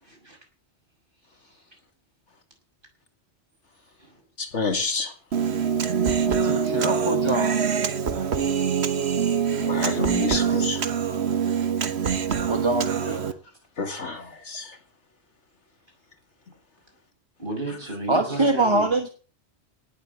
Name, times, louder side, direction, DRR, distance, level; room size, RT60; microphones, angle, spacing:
voice 1, 0.0-0.4 4.0-4.2 17.4-18.9, right 2 dB, 45° right, 1 dB, 6.5 m, -33 dB
voice 2, 4.4-5.1 9.6-10.8 13.8-14.8, left 4 dB, 75° left, 6 dB, 2.4 m, -29 dB
Human voice, 5.3-13.3, right 7 dB, 65° right, 1.4 m, -24 dB
voice 3, 6.2-7.6 12.5-13.3 18.1-19.1, right 2 dB, 25° right, 6 dB, 1.2 m, -24 dB
18.0 x 7.1 x 8.2 m, 0.41 s
omnidirectional pair, 1.2 m